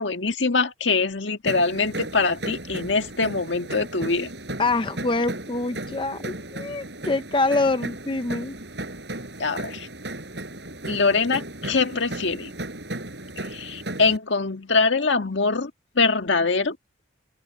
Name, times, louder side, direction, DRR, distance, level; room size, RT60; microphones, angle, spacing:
voice 1, 0.0-4.3 9.4-9.9 10.9-12.5 13.4-15.7 16.0-16.8, left 4 dB, 80° left, 1.7 m, -23 dB
sound 1, 1.4-14.2, right 1 dB, 65° right, 7.4 m, -35 dB
voice 2, 4.6-8.5, left 3 dB, 25° left, 0.6 m, -25 dB
head